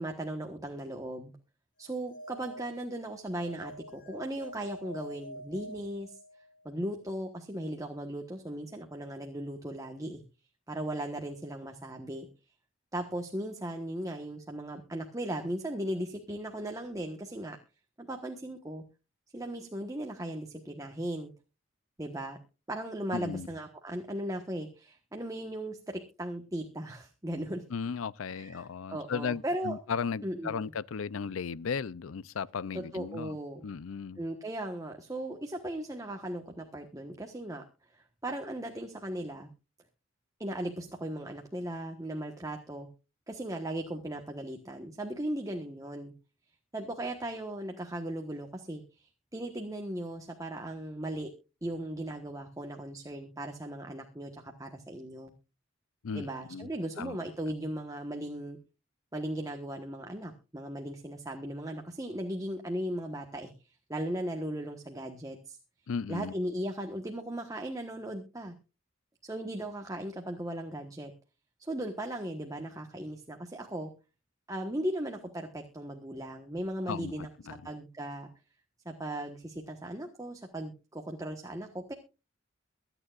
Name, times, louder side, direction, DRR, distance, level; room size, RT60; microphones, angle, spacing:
voice 1, 0.0-1.3 1.8-6.2 6.6-10.2 10.7-12.3 12.9-17.6 18.0-18.8 19.3-21.3 22.0-22.4 22.7-27.6 28.3-29.8 30.2-30.7 32.7-33.6 34.2-37.6 37.9-39.5 40.4-42.9 43.3-46.1 46.7-51.3 51.6-55.3 56.1-58.6 59.1-65.6 66.1-68.5 69.2-71.1 71.6-73.9 74.5-78.3 78.8-81.9, right 1 dB, 15° right, 1.3 m, -37 dB
sound 1, 1.9-6.7, equal, 60° left, 5.3 m, -47 dB
voice 2, 23.1-23.5 27.7-33.4 33.6-34.2 56.0-56.7 57.0-57.2 65.9-66.3 76.9-77.1 77.5-77.6, left 6 dB, 80° left, 0.5 m, -35 dB
23.5 x 9.1 x 2.4 m
head